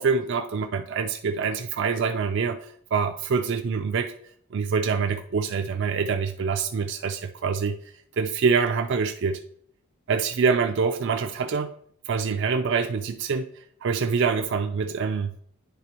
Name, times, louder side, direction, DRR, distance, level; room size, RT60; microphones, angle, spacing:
voice 1, 0.0-4.1 4.5-7.8 8.2-9.4 10.1-11.7 12.1-13.5 13.8-15.3, right 5 dB, 60° right, 5 dB, 0.4 m, -25 dB
9.5 x 3.3 x 4.4 m, 0.64 s
head